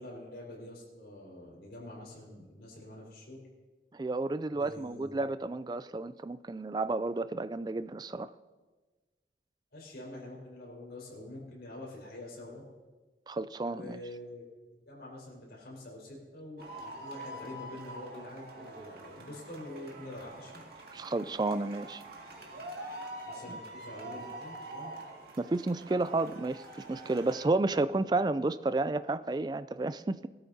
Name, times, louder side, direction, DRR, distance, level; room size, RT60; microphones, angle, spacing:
voice 1, 0.0-3.4 4.5-5.1 9.7-12.6 13.7-14.4 14.8-20.6 23.2-24.9, left 1 dB, 70° left, -4 dB, 4.8 m, -46 dB
voice 2, 3.9-8.3 13.3-14.0 20.9-22.0 23.5-23.6 25.4-26.6 26.9-30.3, right 2 dB, 25° right, 14 dB, 0.3 m, -31 dB
sound 1, 16.6-27.5, right 1 dB, 60° right, 2.1 m, -45 dB
19.5 x 13.0 x 2.8 m, 1.3 s
head